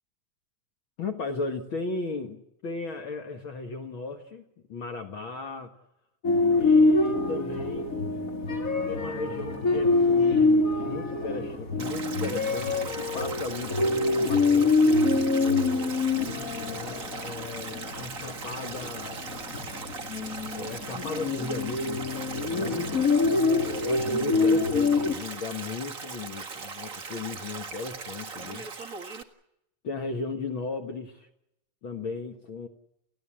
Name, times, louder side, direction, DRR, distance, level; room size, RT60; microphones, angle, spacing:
voice 1, 1.0-4.4 4.7-5.7 6.3-8.0 8.9-15.3 16.6-19.4 20.5-22.9 23.8-28.7 29.8-31.3 31.8-32.7, left 3 dB, 50° left, 5 dB, 1.8 m, -36 dB
sound 1, 6.2-25.1, left 3 dB, 30° left, 2.6 m, -25 dB
Stream, 11.8-29.2, right 5 dB, 35° right, 1.5 m, -39 dB
29.5 x 16.0 x 8.7 m, 0.84 s
omnidirectional pair, 3.6 m